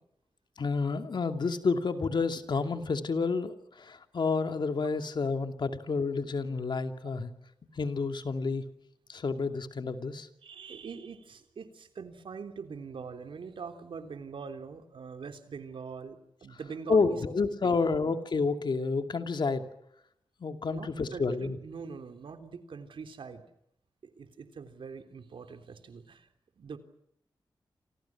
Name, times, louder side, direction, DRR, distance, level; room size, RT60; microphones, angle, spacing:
voice 1, 0.6-7.3 7.8-8.6 9.1-10.3 16.9-19.7 20.4-21.6, left 4 dB, 65° left, 7 dB, 2.6 m, -29 dB
voice 2, 10.4-17.2 17.6-17.8 18.0-18.1 20.7-23.4 24.0-26.3 26.6-26.8, right 5 dB, 85° right, 7 dB, 3.4 m, -43 dB
29.5 x 27.5 x 6.1 m, 0.76 s
wide cardioid pair, 105°, 9 cm